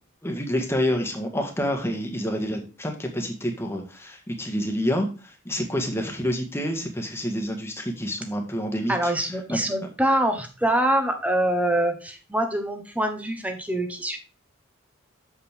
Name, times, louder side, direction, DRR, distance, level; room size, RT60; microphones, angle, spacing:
voice 1, 0.2-9.6, equal, 10° left, 3 dB, 1.6 m, -28 dB
voice 2, 8.9-14.2, right 1 dB, 5° right, 6 dB, 1.1 m, -24 dB
7.6 x 7.3 x 3.4 m, 0.34 s
head